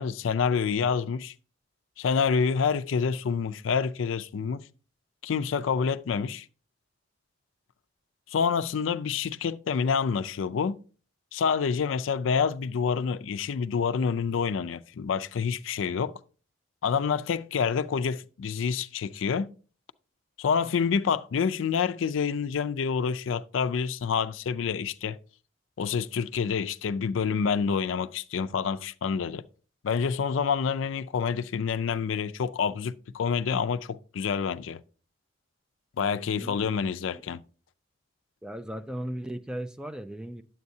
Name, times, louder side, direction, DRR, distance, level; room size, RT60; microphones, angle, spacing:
voice 1, 0.0-1.3 2.0-4.7 5.2-6.5 8.3-10.8 11.3-16.2 16.8-19.5 20.4-25.2 25.8-29.4 29.8-34.8 36.0-37.4, left 6 dB, 85° left, 0.4 m, -27 dB
voice 2, 38.4-40.4, right 1 dB, 5° right, 0.4 m, -36 dB
9.4 x 7.7 x 2.7 m
head